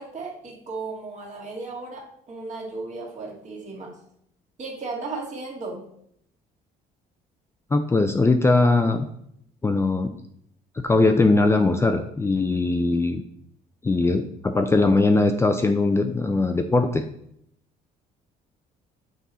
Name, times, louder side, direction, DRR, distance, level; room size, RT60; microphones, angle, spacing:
voice 1, 0.0-4.0 4.6-5.9, right 3 dB, 45° right, -1 dB, 1.9 m, -35 dB
voice 2, 7.7-9.1 9.6-10.1 10.8-13.2 13.8-17.0, left 3 dB, 15° left, 6 dB, 0.4 m, -20 dB
6.1 x 4.1 x 4.2 m, 0.70 s
cardioid pair, 110°, 17 cm